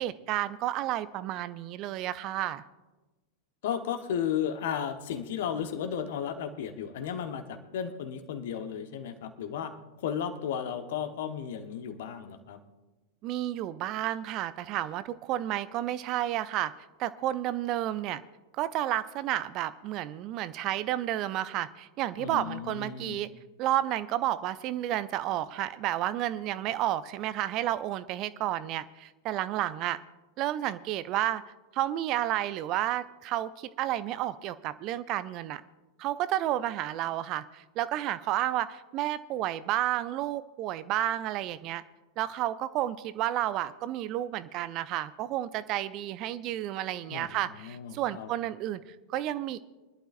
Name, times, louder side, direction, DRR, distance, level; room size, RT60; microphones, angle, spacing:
voice 1, 0.0-2.6 13.2-16.7 17.0-18.2 18.5-23.3 23.6-30.0 30.4-31.4 31.7-35.6 36.0-41.8 42.2-49.6, right 13 dB, 40° right, 15 dB, 0.5 m, -31 dB
voice 2, 3.6-9.7 10.0-12.6 22.2-23.2 47.1-48.3, left 8 dB, 55° left, 8 dB, 1.2 m, -34 dB
24.5 x 11.5 x 2.6 m, 1.1 s
figure-of-eight pair, 90°, 0 cm